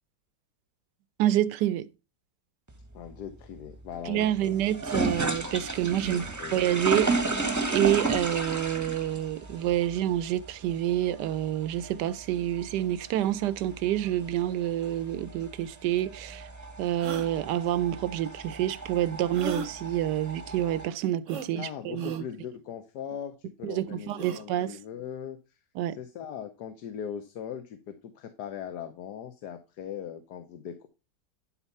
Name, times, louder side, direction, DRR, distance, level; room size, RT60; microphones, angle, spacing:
voice 1, 1.2-1.9 4.0-6.2 6.5-7.2 7.7-16.5 16.8-22.2 23.6-24.8 25.8-26.0, right 12 dB, 75° right, 1.2 m, -28 dB
sound 1, 2.7-20.9, right 2 dB, 10° right, 0.9 m, -34 dB
voice 2, 2.9-4.5 6.0-6.8 21.5-25.4 26.0-30.9, left 8 dB, 65° left, 1.4 m, -40 dB
sound 2, 16.0-16.1 17.0-17.3 19.3-19.7 21.3-21.5 21.9-22.2 24.1-24.4, right 4 dB, 50° right, 1.0 m, -37 dB
11.5 x 4.3 x 5.4 m
omnidirectional pair, 1.9 m